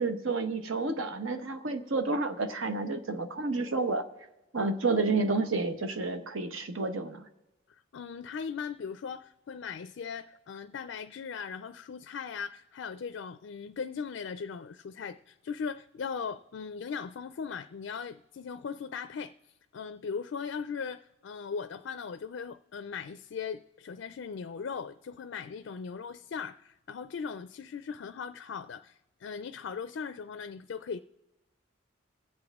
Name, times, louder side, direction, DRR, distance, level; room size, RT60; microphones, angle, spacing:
voice 1, 0.0-4.0 4.5-7.3, right 3 dB, 80° right, 1.0 m, -30 dB
voice 2, 7.9-19.3 19.7-31.0, left 6 dB, 65° left, 0.4 m, -39 dB
23.0 x 7.9 x 3.5 m
head